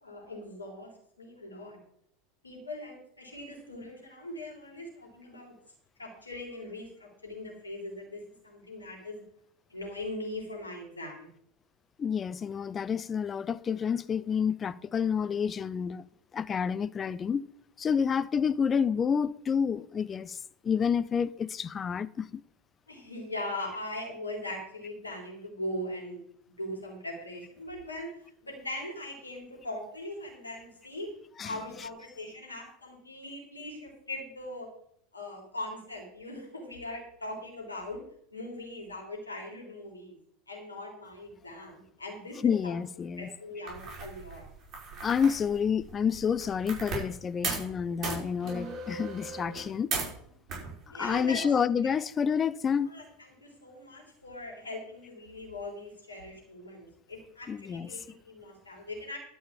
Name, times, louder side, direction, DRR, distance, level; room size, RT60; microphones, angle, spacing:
voice 1, 0.0-1.8 2.4-5.5 6.0-9.2 9.7-11.3 22.9-28.1 28.4-31.1 31.4-34.7 35.1-38.0 38.3-40.2 40.5-42.4 42.6-42.8 43.2-44.4 50.9-51.5 51.8-52.0 52.9-53.0 53.4-59.2, left 1 dB, 80° left, 3.5 m, -40 dB
voice 2, 12.0-16.0 16.3-17.4 17.8-20.4 20.6-22.4 31.4-31.5 42.4-43.3 45.0-49.9 51.0-52.9 57.5-57.9, left 7 dB, 25° left, 0.5 m, -29 dB
sound 1, 43.7-47.2 47.4-47.7 48.0-50.2 50.5-51.1, right 4 dB, 35° right, 5.1 m, -37 dB
12.0 x 5.5 x 7.4 m
figure-of-eight pair, 80°, 0 cm